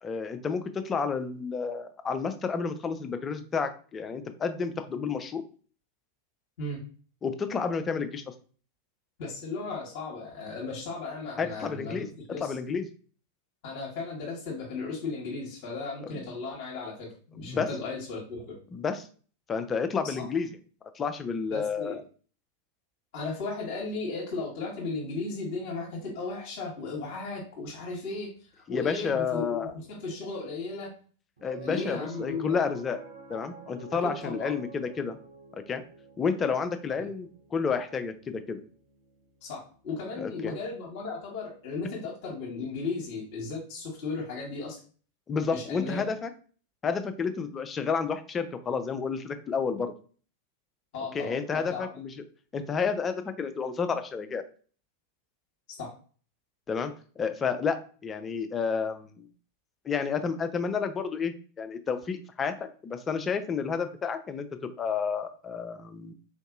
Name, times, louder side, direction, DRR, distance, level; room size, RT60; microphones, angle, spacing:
voice 1, 0.0-5.4 7.2-8.3 11.4-12.1 12.4-12.9 16.2-16.3 17.4-17.7 18.7-19.1 19.5-20.5 20.9-22.0 28.7-29.7 31.4-33.0 33.3-35.2 35.7-35.8 36.2-38.6 40.2-40.6 45.3-46.3 46.8-49.9 51.1-52.1 52.5-54.4 56.7-59.3 59.8-62.6 62.8-66.1, left 5 dB, 20° left, 8 dB, 0.4 m, -30 dB
voice 2, 9.2-12.0 12.3-12.5 13.6-18.6 20.0-20.2 21.5-22.0 23.1-30.9 31.6-32.6 34.0-34.5 36.9-37.1 39.4-44.8 45.5-46.0 50.9-51.9 55.8-55.9, left 3 dB, 45° left, -3 dB, 1.0 m, -36 dB
Piano, 31.4-41.9, right 4 dB, 70° right, 1.1 m, -50 dB
3.8 x 2.6 x 2.4 m, 0.41 s
figure-of-eight pair, 90°, 0 cm